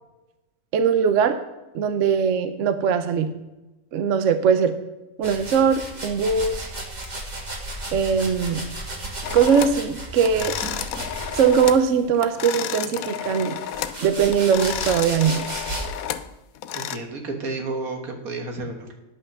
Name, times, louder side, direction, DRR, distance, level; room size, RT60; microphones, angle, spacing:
voice 1, 0.7-1.4 1.7-3.3 3.9-4.7 5.2-6.7 7.9-8.6 9.3-10.6 11.3-13.6 14.0-15.5, right 7 dB, 65° right, 10 dB, 1.0 m, -20 dB
sound 1, 5.2-12.0 12.8-16.0, right 1 dB, 30° right, 1.6 m, -34 dB
sound 2, 9.2-9.8 10.2-11.9 12.1-14.0 14.3-17.0, left 10 dB, 80° left, 1.0 m, -31 dB
sound 3, 10.6-11.3 12.0-12.1 13.7-13.8, right 1 dB, 5° right, 1.5 m, -40 dB
voice 2, 16.7-18.9, right 3 dB, 85° right, 4 dB, 1.9 m, -31 dB
9.7 x 5.6 x 6.6 m, 1.1 s
omnidirectional pair, 1.5 m